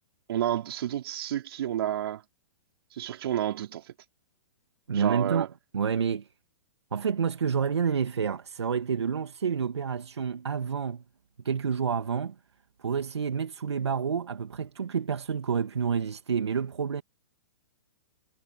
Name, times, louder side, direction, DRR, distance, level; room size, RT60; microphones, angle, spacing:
voice 1, 0.3-2.2 2.9-3.9 4.9-5.5, right 11 dB, 65° right, 3.6 m, -30 dB
voice 2, 4.9-5.5 5.7-6.3 6.9-11.0 11.4-12.4 12.8-17.0, right 6 dB, 80° right, 2.2 m, -29 dB
hypercardioid pair, 115°, 14 cm